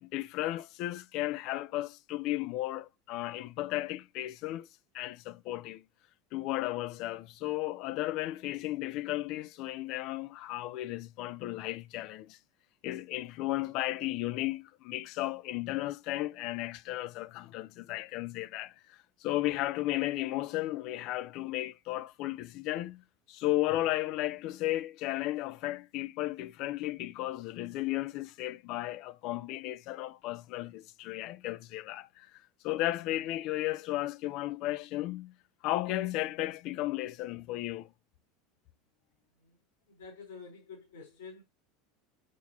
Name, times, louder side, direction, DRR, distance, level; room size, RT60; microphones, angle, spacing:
voice 1, 0.0-4.7 4.9-5.9 6.3-12.4 12.8-32.3 32.6-35.3 35.6-37.9, left 16 dB, 55° left, 0.5 m, -34 dB
voice 2, 39.9-41.4, left 5 dB, 70° left, 3.9 m, -48 dB
6.3 x 5.7 x 2.9 m
hypercardioid pair, 80°, 0 cm